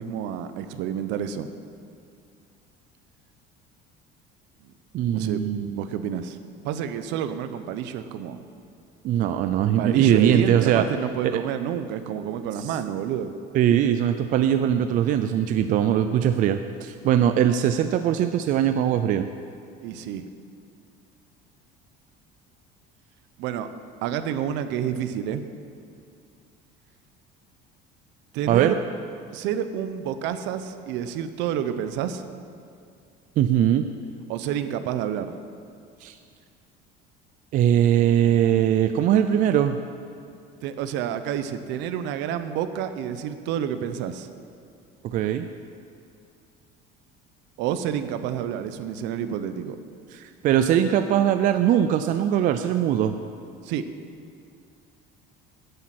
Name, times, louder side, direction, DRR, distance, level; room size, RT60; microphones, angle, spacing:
voice 1, 0.0-1.5 4.6-4.7 5.1-5.4 5.7-6.4 6.6-8.4 9.8-13.3 19.8-20.3 23.4-23.7 24.0-25.4 28.3-28.8 29.3-32.2 34.3-35.4 40.6-44.3 47.6-49.8 53.6-53.8, right 9 dB, 65° right, 10 dB, 0.8 m, -29 dB
voice 2, 4.9-5.8 9.0-10.9 11.3-11.4 13.5-19.3 28.5-28.8 33.4-33.9 36.0-36.2 37.5-39.8 45.0-45.5 50.1-53.2, right 10 dB, 45° right, 9 dB, 0.4 m, -21 dB
10.5 x 8.3 x 7.8 m, 2.4 s
cardioid pair, 160°, 20 cm